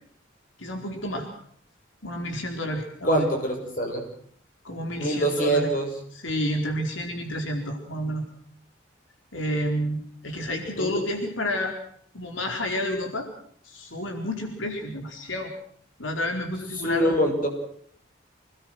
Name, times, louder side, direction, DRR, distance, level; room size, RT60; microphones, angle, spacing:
voice 1, 0.6-1.3 2.0-3.3 4.6-5.7 6.1-8.2 9.3-11.7 12.1-13.3 13.6-15.5 16.0-17.2, left 1 dB, 80° left, 3 dB, 4.4 m, -30 dB
voice 2, 3.0-4.0 5.0-5.9 10.8-11.0 16.8-17.5, right 1 dB, 45° left, 2 dB, 6.7 m, -24 dB
27.0 x 20.0 x 6.4 m, 0.63 s
head